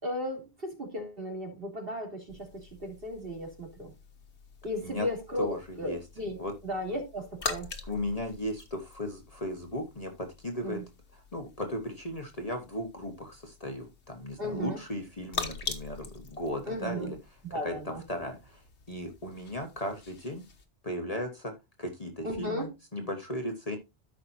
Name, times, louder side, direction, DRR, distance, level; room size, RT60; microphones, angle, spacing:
voice 1, 0.0-3.9 4.6-7.7 10.6-10.8 14.4-14.8 16.7-17.1 17.4-18.0 22.2-22.7, equal, 55° right, 3.5 m, -35 dB
sound 1, 2.3-20.6, left 5 dB, 75° left, 1.6 m, -44 dB
voice 2, 5.4-6.0 6.4-6.5 7.8-10.8 11.1-20.4 20.8-21.5 21.8-23.8, left 1 dB, 35° left, 1.4 m, -36 dB
13.5 x 5.9 x 2.7 m
omnidirectional pair, 1.2 m